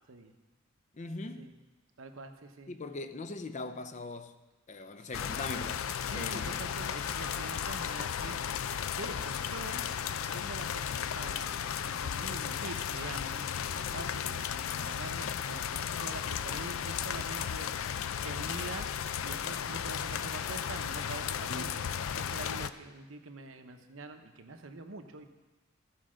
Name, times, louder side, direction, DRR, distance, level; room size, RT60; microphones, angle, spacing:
voice 1, 0.9-1.5 2.7-4.4 4.7-6.6 21.5-21.7, left 3 dB, 35° left, 0.5 m, -41 dB
voice 2, 2.0-2.7 5.0-5.1 6.1-8.4 8.9-9.9 10.3-13.4 13.7-17.7 18.2-18.9 19.2-21.7 22.1-25.3, right 3 dB, 75° right, 0.9 m, -45 dB
sound 1, 5.1-22.7, left 8 dB, 85° left, 0.4 m, -35 dB
14.5 x 4.9 x 6.3 m
head